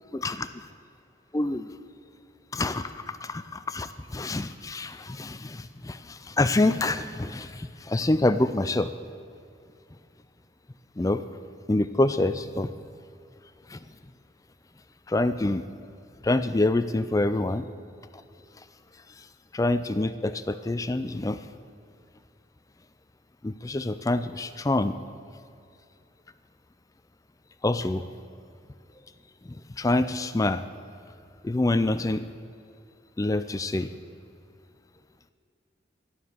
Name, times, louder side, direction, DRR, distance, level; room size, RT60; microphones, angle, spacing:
voice 1, 0.1-0.5 1.3-1.7 2.5-8.9 11.0-11.2 11.7-12.7 13.7-13.8 15.1-15.6 16.2-17.7 19.2-19.3 19.5-21.4 23.4-24.9 27.6-28.0 29.4-30.6 31.4-32.3 33.2-33.9, left 2 dB, 20° left, 11 dB, 0.4 m, -26 dB
13.5 x 11.5 x 6.8 m, 2.4 s
head